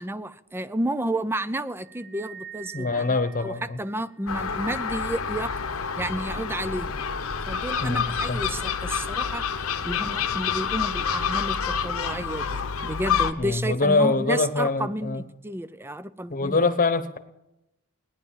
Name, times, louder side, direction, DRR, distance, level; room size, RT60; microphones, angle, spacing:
voice 1, 0.0-5.5 6.0-7.1 7.5-9.5 9.8-16.7, right 1 dB, 10° right, 15 dB, 0.5 m, -31 dB
sound 1, 1.8-4.4, right 9 dB, 65° right, 1.3 m, -45 dB
voice 2, 2.7-3.8 7.8-8.4 13.4-15.2 16.3-17.2, left 3 dB, 40° left, 10 dB, 1.1 m, -24 dB
Gull seagull, 4.3-13.3, left 6 dB, 75° left, 1.0 m, -28 dB
18.5 x 10.5 x 7.3 m, 0.90 s
head